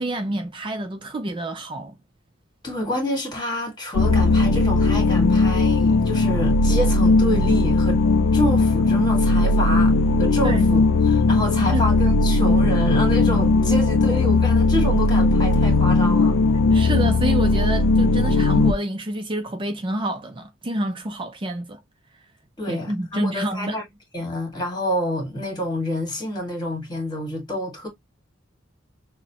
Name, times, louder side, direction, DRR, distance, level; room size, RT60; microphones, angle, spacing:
voice 1, 0.0-1.9 10.4-10.7 11.7-11.8 16.7-21.8 22.7-23.8, right 1 dB, 25° right, 0.4 m, -28 dB
voice 2, 2.6-8.0 8.3-16.4 22.6-23.8 24.1-27.9, equal, 20° left, 1.9 m, -27 dB
sound 1, 3.9-18.7, left 3 dB, 75° left, 0.4 m, -18 dB
6.3 x 2.1 x 2.8 m
head